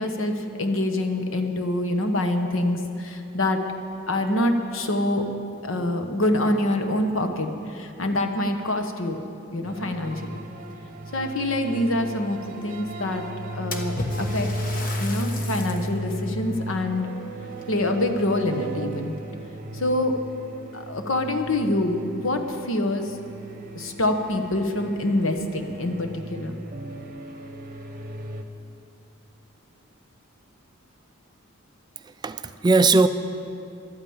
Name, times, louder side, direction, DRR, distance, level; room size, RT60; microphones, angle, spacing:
voice 1, 0.0-3.6 4.1-5.3 5.6-9.2 9.5-10.4 11.1-13.2 13.5-14.5 15.0-17.1 17.7-19.1 19.7-20.2 20.7-23.1 23.7-26.6, left 1 dB, 70° left, 5 dB, 1.1 m, -25 dB
sound 1, 9.6-28.4, right 1 dB, 40° right, 0.9 m, -35 dB
Splash splatter, 13.7-16.0 16.5-16.6 17.5-18.6 18.9-19.4 20.2-20.3 20.7-20.8 23.0-23.1 23.4-23.5 24.1-24.2 24.6-24.7 25.4-26.0, left 2 dB, 40° left, 1.2 m, -36 dB
voice 2, 32.0-33.1, right 3 dB, 20° right, 11 dB, 0.3 m, -19 dB
12.0 x 8.9 x 8.7 m, 2.7 s
head